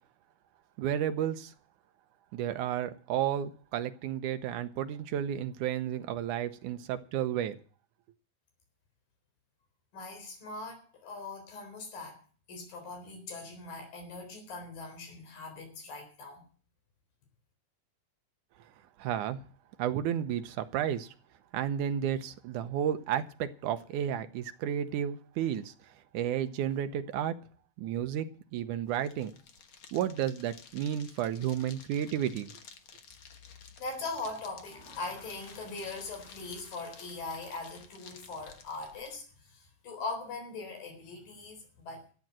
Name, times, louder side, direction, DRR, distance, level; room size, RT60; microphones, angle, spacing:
voice 1, 0.8-1.5 2.3-7.6 19.0-19.4 19.8-21.1 21.5-25.7 26.1-27.3 27.8-28.3 28.5-29.3 29.9-32.5, right 10 dB, 70° right, 2.2 m, -32 dB
voice 2, 9.9-12.2 12.5-16.4 33.8-42.0, left 3 dB, 75° left, 5.7 m, -41 dB
sound 1, 28.8-39.2, left 6 dB, 60° left, 1.5 m, -54 dB
13.5 x 8.5 x 7.6 m
omnidirectional pair, 4.0 m